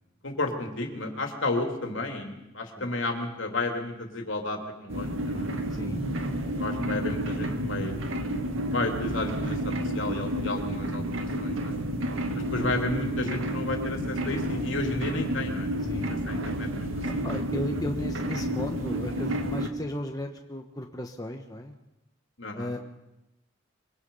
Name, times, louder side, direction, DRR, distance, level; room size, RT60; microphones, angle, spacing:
voice 1, 0.2-5.5 6.6-8.0 8.7-11.8 12.5-15.7 16.1-17.2 18.6-18.7 22.4-22.7, left 2 dB, 65° left, 4 dB, 3.2 m, -32 dB
sound 1, 4.9-19.7, right 1 dB, 70° right, 2.1 m, -30 dB
voice 2, 5.7-6.1 11.8-12.1 15.9-16.1 17.0-21.7 22.5-22.8, left 1 dB, 20° left, 3 dB, 1.3 m, -35 dB
25.0 x 23.5 x 5.6 m, 0.92 s
head